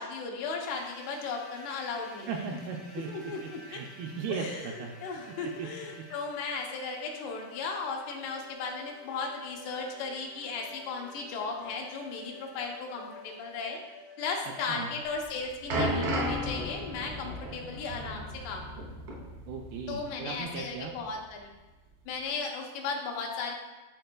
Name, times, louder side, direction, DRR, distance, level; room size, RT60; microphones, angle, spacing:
voice 1, 0.0-2.3 3.0-3.8 4.3-4.7 5.0-13.8 14.2-18.7 19.9-21.5 22.1-23.5, left 4 dB, 80° left, 1 dB, 2.8 m, -36 dB
sound 1, 0.6-17.7, left 2 dB, 55° left, 1.0 m, -51 dB
voice 2, 2.3-4.9 5.3-5.7 14.7-14.9 19.5-20.9, right 5 dB, 85° right, 1 dB, 2.2 m, -37 dB
sound 2, 15.1-20.0 20.2-20.4 21.1-21.2, equal, 65° right, 1.3 m, -34 dB
12.0 x 4.3 x 2.2 m, 1.1 s
omnidirectional pair, 4.8 m